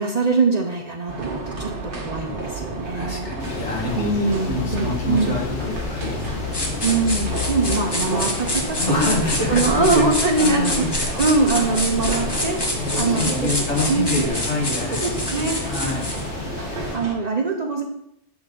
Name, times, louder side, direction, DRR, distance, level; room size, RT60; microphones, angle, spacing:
voice 1, 0.0-1.7 2.0-3.3 4.0-5.4 6.8-9.0 9.5-13.3 13.9-14.1 14.9-15.7 16.7-17.8, right 3 dB, 45° right, 3 dB, 0.6 m, -23 dB
sound 1, 1.1-17.2, right 2 dB, 75° right, 1.5 m, -32 dB
voice 2, 3.0-6.4 8.8-10.1 10.4-10.9 12.7-15.2 15.7-16.1, left 2 dB, 75° left, -2 dB, 1.8 m, -26 dB
sound 2, 3.4-17.0, left 4 dB, 50° left, 0.9 m, -31 dB
sound 3, 6.5-16.3, left 1 dB, 25° left, 1.0 m, -28 dB
8.0 x 3.9 x 3.7 m, 0.77 s
omnidirectional pair, 1.2 m